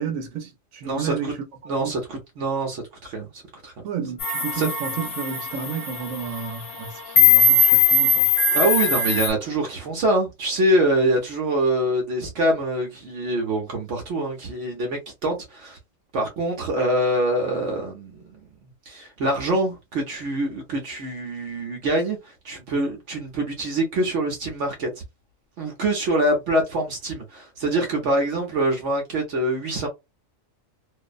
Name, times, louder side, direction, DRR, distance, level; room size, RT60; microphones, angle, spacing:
voice 1, 0.0-1.3 1.6-1.9 3.8-8.3, right 6 dB, 90° right, 1.1 m, -32 dB
voice 2, 0.8-1.3 1.6-3.7 4.5-4.7 8.5-15.8 16.1-18.2 18.9-24.9 25.6-29.9, right 1 dB, 65° right, 1.1 m, -24 dB
sound 1, 4.2-9.3, left 4 dB, 50° left, 0.9 m, -19 dB
2.6 x 2.1 x 2.3 m
omnidirectional pair, 1.4 m